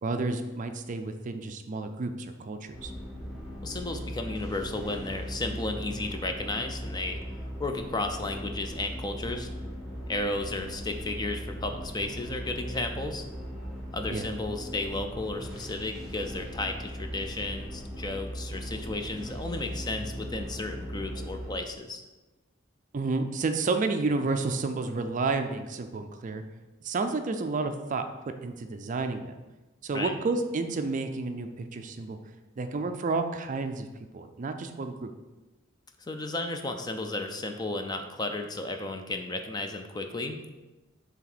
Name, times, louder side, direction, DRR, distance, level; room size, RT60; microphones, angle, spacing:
voice 1, 0.0-2.9 14.1-14.3 22.9-26.4 26.8-29.4 29.8-32.2 32.6-33.9 34.1-35.1, right 3 dB, 40° right, 7 dB, 0.4 m, -31 dB
sound 1, 2.7-21.5, equal, 5° right, 1.7 m, -38 dB
voice 2, 3.6-7.2 7.6-9.5 10.1-13.2 13.9-22.0 29.9-30.1 36.0-40.4, left 2 dB, 20° left, 5 dB, 0.4 m, -33 dB
7.2 x 3.4 x 4.1 m, 1.1 s
head